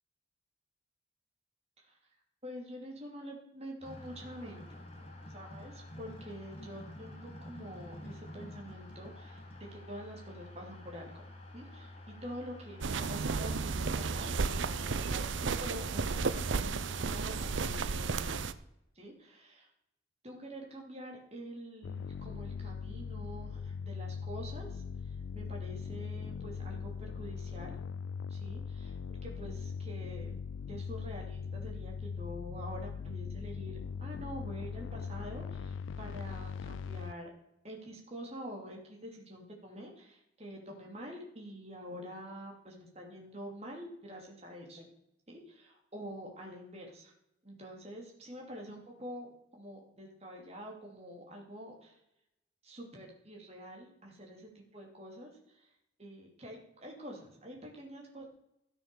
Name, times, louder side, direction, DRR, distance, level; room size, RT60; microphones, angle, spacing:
voice 1, 2.4-4.8 5.3-11.2 11.5-18.4 18.9-19.7 20.2-27.8 28.3-30.3 30.7-37.3 37.6-44.9 45.3-47.1 47.4-52.0 52.6-55.7 56.0-58.3, equal, 30° right, 0 dB, 2.8 m, -47 dB
sound 1, 3.8-17.8, left 1 dB, 30° left, 2.3 m, -49 dB
sound 2, 12.8-18.5, right 4 dB, 70° right, 0.6 m, -33 dB
sound 3, 21.8-37.1, left 6 dB, 70° left, 0.3 m, -40 dB
13.5 x 6.8 x 6.8 m, 0.81 s
head